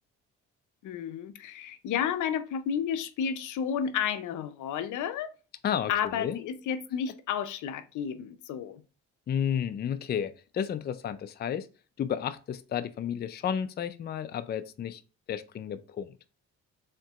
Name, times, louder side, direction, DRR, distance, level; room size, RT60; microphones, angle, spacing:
voice 1, 0.8-5.3 5.9-8.8, left 8 dB, 80° left, 0.6 m, -31 dB
voice 2, 5.6-6.4 9.3-11.7 12.0-15.0 15.3-16.1, left 8 dB, 35° left, 0.4 m, -32 dB
4.5 x 3.7 x 2.3 m
cardioid pair, 90°, 30 cm